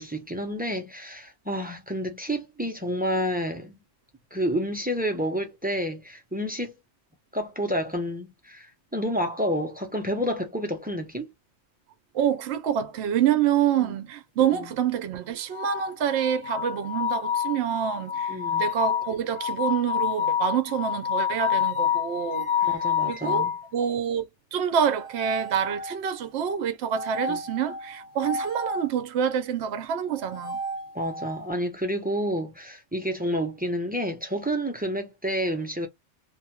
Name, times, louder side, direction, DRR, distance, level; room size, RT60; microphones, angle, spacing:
voice 1, 0.0-3.7 4.3-6.7 7.3-11.3 13.8-13.9 14.4-14.6 18.3-18.7 22.6-23.5 27.3-27.4 30.9-35.9, equal, 15° right, 0.4 m, -29 dB
voice 2, 12.1-24.3 24.5-30.6, right 9 dB, 65° right, 0.8 m, -27 dB
sound 1, 15.5-23.6 24.9-26.2 26.9-28.9 30.1-31.5, left 7 dB, 75° left, 1.2 m, -29 dB
2.7 x 2.3 x 2.8 m
omnidirectional pair, 1.3 m